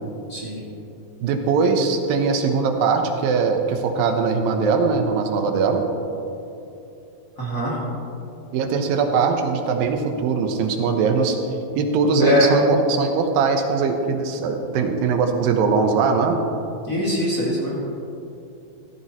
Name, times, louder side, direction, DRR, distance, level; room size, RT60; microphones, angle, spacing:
voice 1, 0.3-0.6 7.4-7.8 12.2-12.5 16.8-17.7, left 2 dB, 25° left, -7 dB, 2.2 m, -22 dB
voice 2, 1.2-5.8 8.5-11.4 11.8-16.4, right 5 dB, 85° right, 5 dB, 2.7 m, -21 dB
14.5 x 14.5 x 3.0 m, 2.8 s
omnidirectional pair, 4.1 m